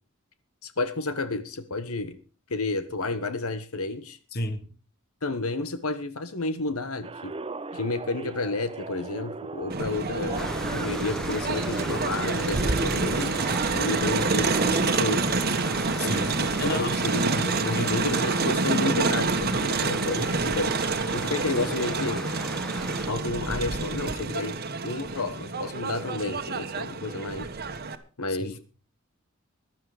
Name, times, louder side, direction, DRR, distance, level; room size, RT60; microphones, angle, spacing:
voice 1, 0.6-2.2 2.5-4.2 5.2-7.4 7.7-13.4 13.7-15.4 16.4-20.8 21.1-22.3 23.0-27.5 28.2-28.6, left 2 dB, 80° left, 1.4 m, -31 dB
voice 2, 4.3-4.7 16.0-17.0 17.7-18.0 28.4-28.5, left 2 dB, 45° left, 1.5 m, -32 dB
sound 1, 7.0-15.0, right 3 dB, 25° right, 0.6 m, -35 dB
Crowd, 9.7-27.9, right 3 dB, 45° right, 1.3 m, -28 dB
sound 2, 10.4-23.1, equal, ahead, 0.8 m, -37 dB
15.5 x 12.0 x 5.0 m
head